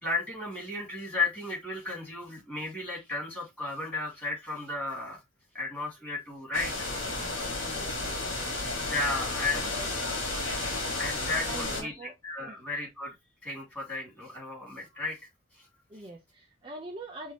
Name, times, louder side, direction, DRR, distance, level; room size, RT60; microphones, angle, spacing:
voice 1, 0.0-5.2 5.5-6.7 8.9-9.6 11.0-13.1 13.4-15.2 15.5-15.7, left 3 dB, 10° left, 2.6 m, -34 dB
sound 1, 6.5-11.8, left 2 dB, 65° left, 1.8 m, -32 dB
voice 2, 7.8-8.4 9.6-10.0 11.5-12.1 12.5-12.6 15.9-17.3, right 1 dB, 25° right, 0.7 m, -43 dB
5.8 x 2.7 x 2.9 m
head